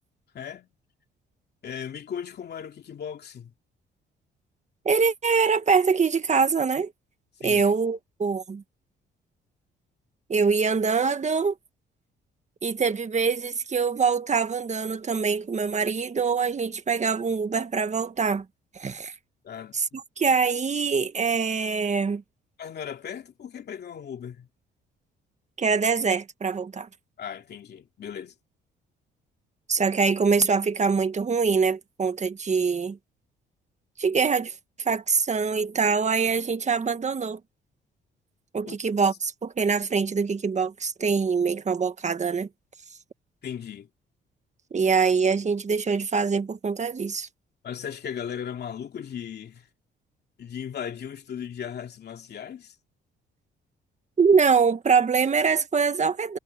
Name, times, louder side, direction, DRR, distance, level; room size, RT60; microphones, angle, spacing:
voice 1, 0.3-0.7 1.6-3.5 7.4-7.6 19.4-20.0 22.6-24.5 27.2-28.3 38.6-38.8 43.4-43.9 47.6-49.7 50.4-52.7, left 8 dB, 55° left, 2.6 m, -37 dB
voice 2, 4.8-6.9 7.4-8.6 10.3-11.5 12.6-18.4 18.7-19.1 19.7-22.2 25.6-26.9 29.7-33.0 34.0-34.5 34.8-37.4 38.5-42.5 44.7-47.3 54.2-56.4, right 5 dB, 35° right, 1.7 m, -24 dB
cardioid pair, 90°, 20 cm